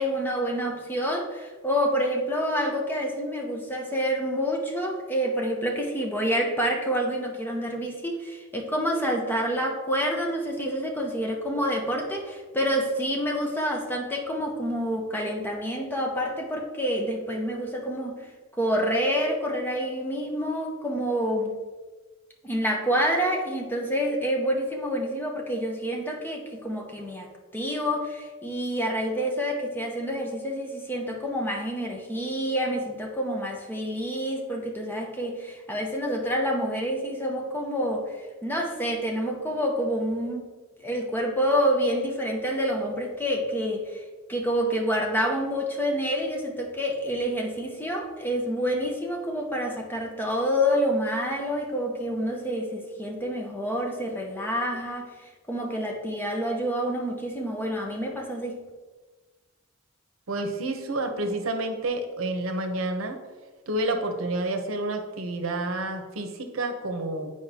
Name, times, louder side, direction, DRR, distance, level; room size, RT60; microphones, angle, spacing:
voice 1, 0.0-18.3 18.6-21.5 22.4-40.5 40.8-44.0 44.3-58.7, equal, 10° left, 0 dB, 0.7 m, -28 dB
voice 2, 60.3-63.2 63.7-67.3, right 2 dB, 75° right, 5 dB, 0.8 m, -29 dB
8.4 x 4.8 x 2.8 m, 1.3 s
head